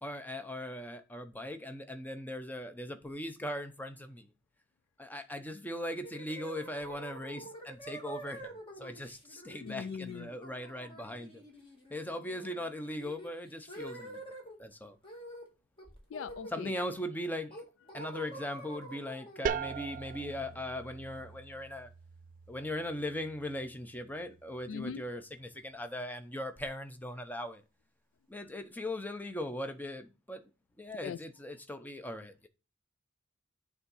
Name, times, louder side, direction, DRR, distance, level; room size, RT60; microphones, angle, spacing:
voice 1, 0.0-4.3 5.0-11.4 11.9-14.2 14.6-15.0 16.5-17.6 17.9-21.9 22.5-27.6 28.3-30.4 30.8-32.5, left 1 dB, 10° left, 0.7 m, -39 dB
sound 1, 6.0-14.6 15.0-15.5 15.8-17.0 17.5-21.2, right 1 dB, 25° left, 1.9 m, -48 dB
voice 2, 9.6-10.3 16.1-16.7 24.7-25.0 28.4-28.5 31.0-31.2, left 6 dB, 70° left, 0.3 m, -40 dB
sound 2, 19.5-25.0, right 7 dB, 45° right, 0.3 m, -41 dB
8.5 x 3.6 x 5.5 m
head